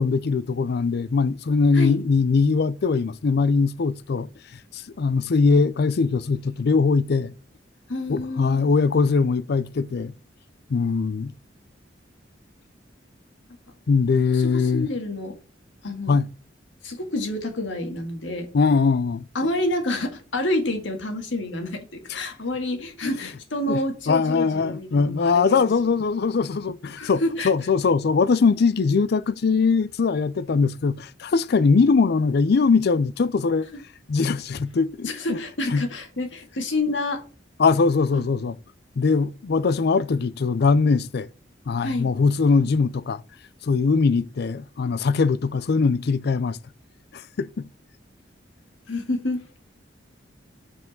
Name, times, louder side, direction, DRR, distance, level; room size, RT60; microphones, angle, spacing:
voice 1, 0.0-4.3 4.7-7.3 8.1-10.1 10.7-11.3 13.9-14.9 16.1-16.3 18.5-19.2 22.1-22.2 23.7-23.8 24.1-33.7 34.1-35.4 35.7-35.8 37.6-38.6 39.0-41.3 41.7-43.2 43.6-46.6 47.1-47.7, left 4 dB, 60° left, 0.5 m, -21 dB
voice 2, 7.9-8.6 14.3-15.3 15.8-16.2 16.8-18.5 19.3-25.6 27.0-27.5 35.1-37.2 38.1-38.2 41.8-42.1 48.9-49.5, left 1 dB, 75° left, 1.9 m, -28 dB
6.0 x 4.6 x 6.4 m
head